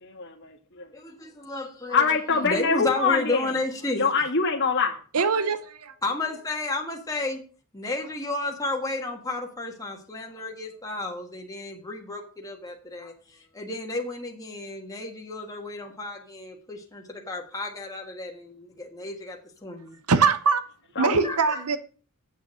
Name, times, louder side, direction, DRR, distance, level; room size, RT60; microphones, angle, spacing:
voice 1, 0.0-0.9 1.9-3.5 4.0-5.0 21.0-21.3, left 5 dB, 55° left, 1.7 m, -24 dB
voice 2, 0.9-4.1 6.0-7.4 7.7-13.1 13.5-20.0 21.2-21.6, left 2 dB, 15° left, 1.5 m, -32 dB
voice 3, 5.1-5.9 20.1-20.6 21.0-21.8, right 5 dB, 85° right, 0.8 m, -22 dB
8.2 x 6.6 x 6.2 m
head